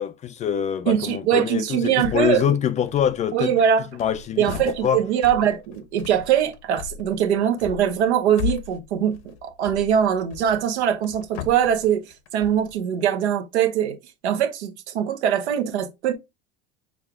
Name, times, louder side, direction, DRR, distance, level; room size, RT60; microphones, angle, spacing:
voice 1, 0.0-3.5 4.0-4.5 4.8-5.0, left 9 dB, 25° left, 0.3 m, -24 dB
voice 2, 0.9-2.5 3.3-3.9 4.4-12.0 12.3-14.0 14.2-16.1, right 9 dB, 85° right, 1.0 m, -22 dB
sound 1, 2.0-2.6 2.8-3.5 3.8-12.8, left 8 dB, 75° left, 0.9 m, -37 dB
6.4 x 2.4 x 3.4 m
supercardioid pair, 115°, 33 cm